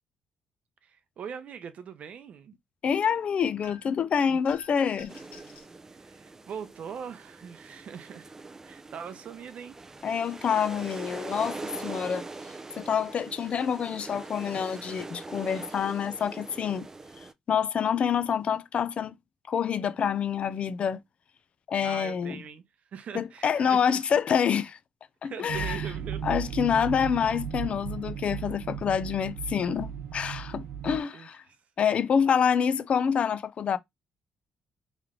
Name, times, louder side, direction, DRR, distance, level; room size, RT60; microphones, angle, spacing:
voice 1, 0.8-2.6 4.3-4.4 5.9-8.3 8.6-9.8 21.8-22.6 22.9-24.0 25.2-26.4 29.2-29.3 31.1-31.6, right 7 dB, 55° right, 0.7 m, -41 dB
voice 2, 2.8-5.2 10.0-12.3 12.8-16.9 17.5-19.1 19.5-21.0 21.7-22.4 23.1-24.8 25.2-25.8 26.2-31.4 31.8-33.8, left 7 dB, 50° left, 0.5 m, -27 dB
sound 1, 3.6-4.0 4.4-5.7, left 5 dB, 75° left, 1.4 m, -50 dB
sound 2, 5.1-17.3, right 3 dB, 20° right, 0.4 m, -42 dB
sound 3, 25.5-31.0, right 8 dB, 90° right, 0.9 m, -36 dB
3.2 x 3.1 x 3.7 m
cardioid pair, 120°, 3 cm